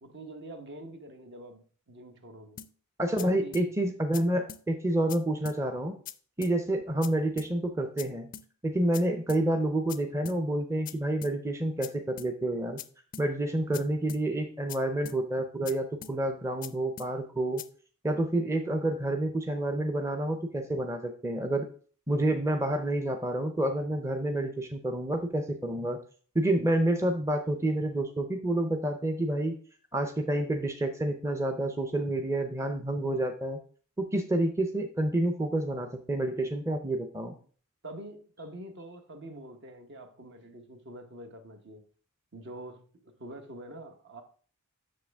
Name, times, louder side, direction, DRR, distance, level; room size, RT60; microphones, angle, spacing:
voice 1, 0.0-2.6 3.2-3.6 37.8-41.9 42.3-44.2, right 1 dB, 55° right, 1.1 m, -45 dB
sound 1, 2.6-2.7 3.2-3.3 3.5-3.7 4.1-4.2 4.5-4.6 5.1-5.2 5.5-5.6 6.1-6.2 6.4-6.6 7.0-7.1 7.4-7.5 8.0-8.1 8.3-8.5 8.9-9.0 9.3-9.4 9.9-10.0 10.3-10.4 10.9-11.0 11.2-11.4 11.8-11.9 12.2-12.3 12.8-12.9 13.1-13.3 13.7-13.8 14.1-14.2 14.7-14.8 15.1-15.2 15.7-15.8 16.0-16.2 16.6-16.7 17.0-17.1 17.6-17.7, left 10 dB, 40° left, 0.4 m, -42 dB
voice 2, 3.0-5.9 6.4-8.3 8.6-12.8 13.2-17.6 18.0-21.7 22.1-26.0 26.3-29.5 29.9-33.6 34.0-37.3, right 1 dB, 15° right, 0.6 m, -29 dB
7.5 x 6.5 x 3.5 m
head